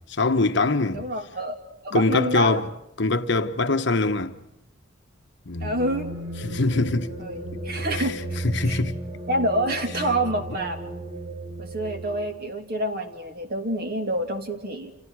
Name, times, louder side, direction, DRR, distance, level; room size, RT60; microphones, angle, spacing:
voice 1, 0.1-1.0 1.9-2.7 3.0-4.3 5.5-5.8 6.4-7.1 7.9-8.1 8.4-8.9, left 3 dB, 55° left, 1.2 m, -23 dB
voice 2, 0.9-1.6 1.8-2.6 5.6-6.1 7.2-7.4 7.6-8.2 8.6-8.8 9.3-10.8 11.6-14.9, right 1 dB, 45° right, 2.8 m, -27 dB
sound 1, 5.8-12.3, right 1 dB, 30° right, 3.7 m, -34 dB
30.0 x 28.0 x 4.8 m
head